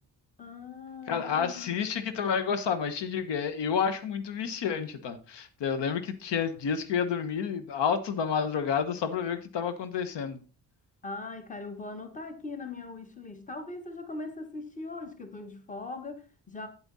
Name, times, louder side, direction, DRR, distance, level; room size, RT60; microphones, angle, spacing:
voice 1, 0.4-1.8 11.0-16.7, left 3 dB, 20° left, 1.4 m, -40 dB
voice 2, 1.1-10.4, left 7 dB, 90° left, 1.1 m, -30 dB
8.8 x 8.3 x 4.0 m
cardioid pair, 125°, 41 cm